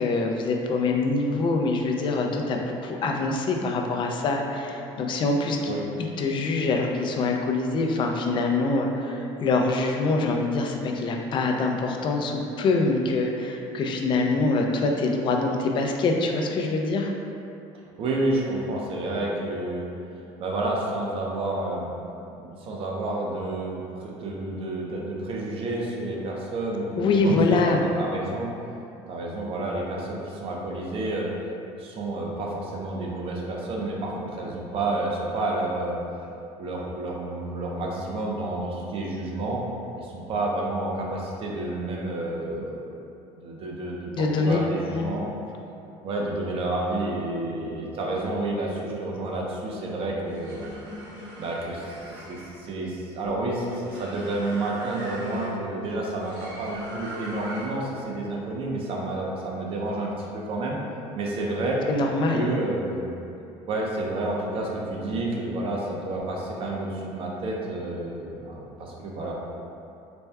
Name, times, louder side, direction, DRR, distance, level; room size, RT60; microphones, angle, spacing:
voice 1, 0.0-17.1 27.0-27.8 44.1-44.6 44.9-45.1 61.9-62.5, left 3 dB, 40° left, 2 dB, 0.4 m, -24 dB
voice 2, 18.0-19.9 20.4-21.9 22.3-28.5 29.1-31.3 31.8-36.0 36.6-39.6 39.9-42.8 43.4-45.3 46.0-50.7 51.4-60.8 61.1-61.8 62.3-63.1 63.7-69.3, right 2 dB, 45° right, -2 dB, 0.7 m, -30 dB
sound 1, 50.2-57.9, right 1 dB, 85° right, 0.9 m, -40 dB
4.2 x 2.2 x 3.4 m, 2.8 s
cardioid pair, 130°, 12 cm